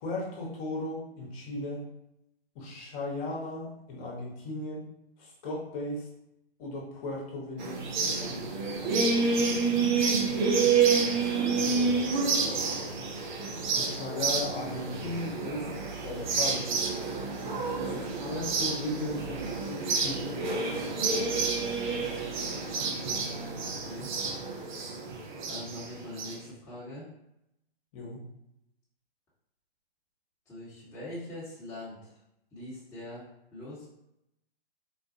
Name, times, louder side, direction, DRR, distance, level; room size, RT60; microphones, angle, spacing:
voice 1, 0.0-1.9 2.5-4.8 5.2-6.1 6.6-8.6 13.7-15.7 16.0-16.7 17.7-20.3 27.9-28.3, left 2 dB, 35° left, -2 dB, 1.1 m, -36 dB
sound 1, 7.6-26.3, right 4 dB, 50° right, 0.7 m, -29 dB
voice 2, 11.0-12.9 23.6-24.1 25.4-27.1 30.5-32.2 32.5-33.3 33.5-33.9, left 1 dB, 10° left, -12 dB, 1.2 m, -43 dB
4.0 x 2.4 x 2.6 m, 0.83 s
hypercardioid pair, 125°, 31 cm